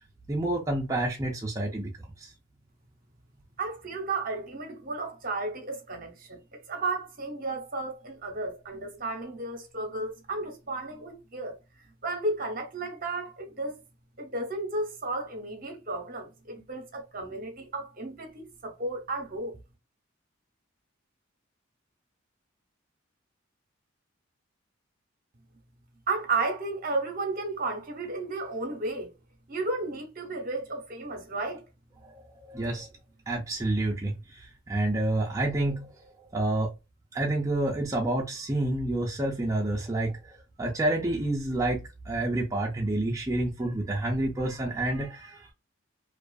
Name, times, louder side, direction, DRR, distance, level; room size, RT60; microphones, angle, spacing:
voice 1, 0.3-1.9 2.2-2.3 32.0-32.1 32.4-32.9 33.3-36.7 37.1-45.5, right 1 dB, 15° right, 0.4 m, -29 dB
voice 2, 3.6-11.6 12.0-13.8 14.2-19.6 26.1-29.1 29.5-31.6, right 2 dB, 45° right, 0.7 m, -33 dB
2.6 x 2.4 x 2.3 m
head